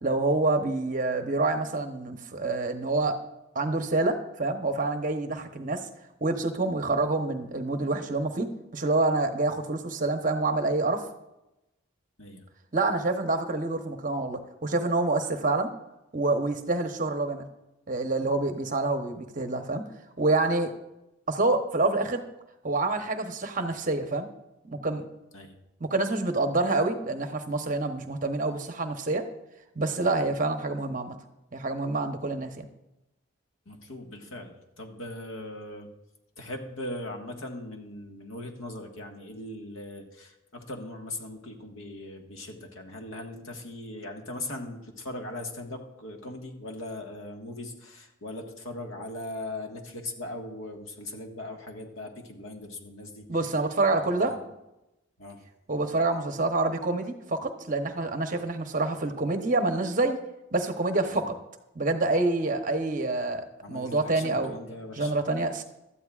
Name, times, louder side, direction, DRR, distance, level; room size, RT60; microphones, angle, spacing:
voice 1, 0.0-3.2 3.5-5.9 6.2-11.1 12.7-15.7 16.1-17.5 17.9-19.8 20.2-20.7 21.3-22.2 22.6-24.3 24.6-25.0 25.8-29.3 29.7-31.2 31.5-32.7 53.3-54.3 55.7-60.2 60.5-61.3 61.7-64.5 65.0-65.6, right 2 dB, 40° right, 6 dB, 0.9 m, -27 dB
voice 2, 33.6-35.9 36.4-53.2 53.9-54.4 55.2-55.4 61.0-61.2 63.6-65.1, left 1 dB, 80° left, 2 dB, 1.7 m, -39 dB
16.5 x 12.5 x 2.4 m, 0.93 s
head